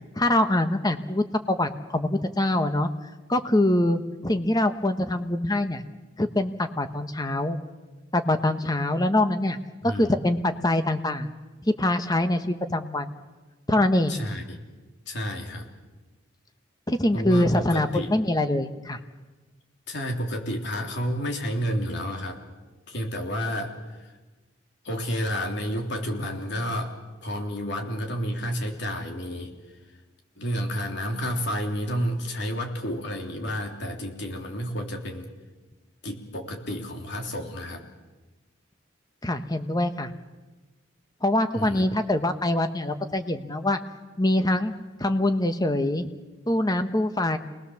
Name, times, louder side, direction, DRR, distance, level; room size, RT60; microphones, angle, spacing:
voice 1, 0.2-2.9 3.3-5.8 6.2-7.6 8.1-9.6 9.8-11.3 11.6-13.1 13.7-14.2 16.9-19.0 39.2-40.1 41.2-43.8 44.2-44.7 45.0-46.1 46.5-47.4, left 1 dB, 20° left, 8 dB, 1.2 m, -24 dB
voice 2, 9.8-10.2 14.1-14.6 15.1-15.7 17.1-18.1 19.9-22.4 22.9-24.1 24.8-26.9 27.2-29.5 30.4-35.3 36.0-37.8 41.5-41.9, equal, 60° left, 3 dB, 3.4 m, -30 dB
28.0 x 20.5 x 7.2 m, 1.2 s
head